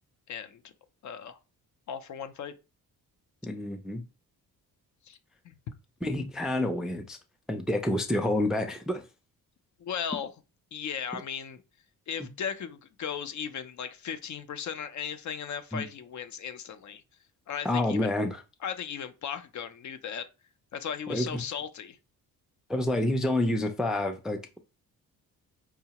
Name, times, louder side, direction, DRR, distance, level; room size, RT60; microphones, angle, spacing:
voice 1, 0.3-0.6 1.0-1.4 1.9-2.5 5.0-5.2 5.4-5.5 9.8-10.3 10.7-11.6 12.1-17.0 17.5-18.1 18.6-20.3 20.7-22.0, left 8 dB, 50° left, 0.5 m, -36 dB
voice 2, 3.4-4.0 6.0-7.2 7.5-9.0 15.7-15.9 17.6-18.4 21.1-21.4 22.7-24.4, left 1 dB, ahead, 0.3 m, -28 dB
4.7 x 2.1 x 2.8 m
cardioid pair, 105°, 37 cm